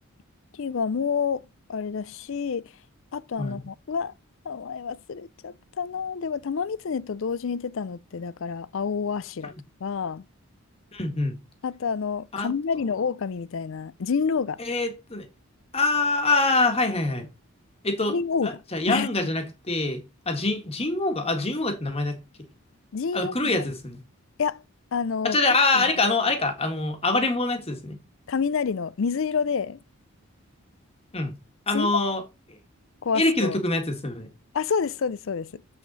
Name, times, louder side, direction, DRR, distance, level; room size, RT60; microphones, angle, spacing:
voice 1, 0.5-1.4 1.7-2.7 3.1-4.1 4.4-9.5 9.8-10.2 11.6-14.6 18.1-18.6 18.9-19.1 22.9-23.7 24.4-24.6 24.9-25.4 25.7-25.9 28.3-29.8 31.7-31.9 33.0-33.6 34.5-35.6, left 6 dB, 60° left, 0.4 m, -28 dB
voice 2, 10.9-11.4 12.3-12.5 14.6-15.3 15.7-17.3 17.8-18.1 18.4-22.2 23.1-24.0 25.2-28.0 31.1-31.3 31.7-32.2 32.5-32.6 33.1-34.3, left 2 dB, 25° left, 1.6 m, -25 dB
7.4 x 6.4 x 4.1 m
head